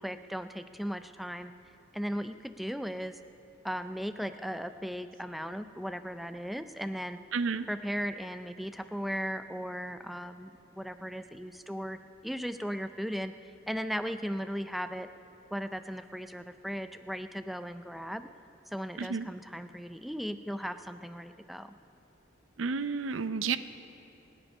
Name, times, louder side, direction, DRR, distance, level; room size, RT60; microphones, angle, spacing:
voice 1, 0.0-1.5 1.9-3.2 3.6-7.2 7.7-15.1 15.5-18.3 18.7-21.7, equal, ahead, 10 dB, 0.4 m, -37 dB
voice 2, 7.3-7.7 19.0-19.3 22.6-23.6, right 5 dB, 75° right, 13 dB, 0.5 m, -31 dB
26.0 x 9.8 x 5.4 m, 2.9 s
head